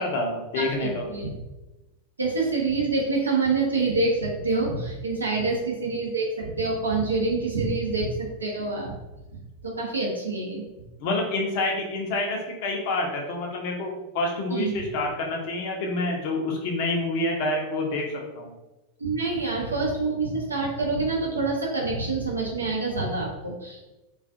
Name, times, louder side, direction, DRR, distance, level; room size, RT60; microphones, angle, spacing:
voice 1, 0.0-1.1 11.0-18.1 18.3-18.5, left 2 dB, 50° left, 1 dB, 0.5 m, -27 dB
voice 2, 0.5-1.3 2.2-8.9 9.6-10.6 14.5-14.8 19.0-23.9, right 3 dB, 75° right, -2 dB, 0.6 m, -26 dB
2.4 x 2.3 x 2.5 m, 1.0 s
figure-of-eight pair, 90°, 0 cm